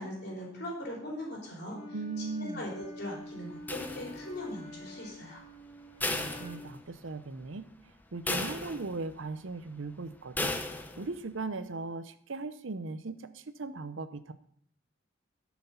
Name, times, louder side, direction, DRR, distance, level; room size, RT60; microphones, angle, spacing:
voice 1, 0.0-1.8 2.2-5.4, left 1 dB, 55° left, -2 dB, 3.7 m, -40 dB
Wind instrument woodwind instrument, 1.7-6.8, left 1 dB, 75° left, 3.2 m, -47 dB
voice 2, 1.9-2.6 6.0-7.7 8.1-10.5 11.0-14.3, right 3 dB, 75° right, 11 dB, 0.7 m, -38 dB
sound 1, 3.7-4.5 6.0-7.1 7.5-7.6 8.3-9.2 10.4-11.1, left 2 dB, 10° left, 0.8 m, -35 dB
12.5 x 6.1 x 5.7 m, 0.64 s
head